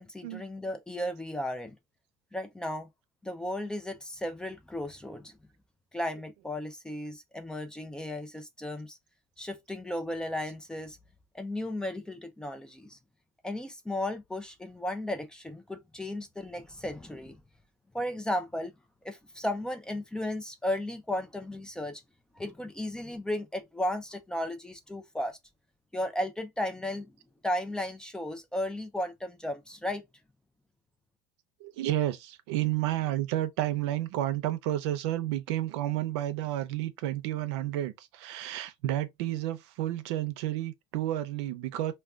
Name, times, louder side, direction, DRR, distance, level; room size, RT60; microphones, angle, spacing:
voice 1, 0.0-1.7 2.3-2.9 3.2-5.4 5.9-9.0 9.4-11.0 11.3-13.0 13.4-17.4 17.9-18.7 19.0-22.0 22.4-25.4 25.9-27.2 27.4-30.0, left 1 dB, 5° left, 0.3 m, -35 dB
voice 2, 31.6-41.9, right 14 dB, 85° right, 0.6 m, -31 dB
2.3 x 2.2 x 3.5 m
cardioid pair, 155°, 14 cm